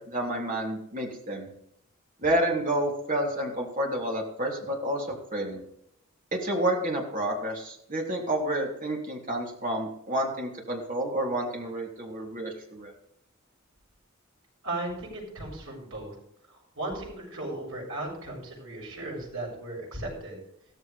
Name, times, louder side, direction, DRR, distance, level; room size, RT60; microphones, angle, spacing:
voice 1, 0.0-1.5 2.2-5.6 6.3-12.9, right 1 dB, 40° right, -1 dB, 3.3 m, -29 dB
voice 2, 14.6-16.1 16.8-20.4, right 2 dB, 70° right, -2 dB, 7.3 m, -36 dB
15.5 x 14.0 x 3.5 m, 0.74 s
head